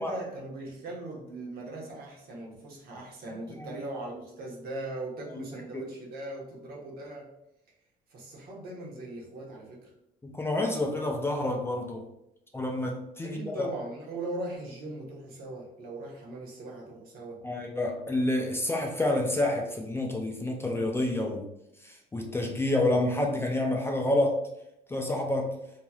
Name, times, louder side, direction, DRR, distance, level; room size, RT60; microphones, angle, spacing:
voice 1, 0.0-7.3 8.1-9.9 13.2-17.4, right 2 dB, 65° right, -2 dB, 1.0 m, -39 dB
voice 2, 10.2-12.0 12.5-13.7 17.4-21.5 21.8-24.4 24.9-25.6, left 1 dB, 15° left, 1 dB, 0.4 m, -28 dB
3.1 x 2.8 x 2.3 m, 0.82 s
cardioid pair, 110°, 17 cm